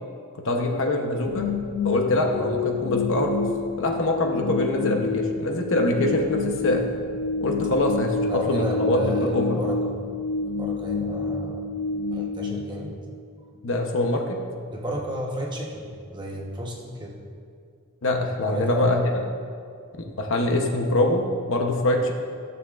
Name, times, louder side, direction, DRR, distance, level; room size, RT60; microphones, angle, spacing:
voice 1, 0.4-1.5 1.8-3.5 3.8-6.8 7.4-9.7 13.6-14.4 18.0-19.0 20.2-22.1, left 1 dB, 60° left, 2 dB, 0.9 m, -24 dB
sound 1, 1.3-13.4, left 4 dB, 80° left, 0.5 m, -29 dB
voice 2, 8.3-9.9 10.5-11.7 12.1-12.9 14.7-17.1 18.5-19.0, equal, 20° right, -1 dB, 1.0 m, -32 dB
15.0 x 6.8 x 2.5 m, 2.3 s
head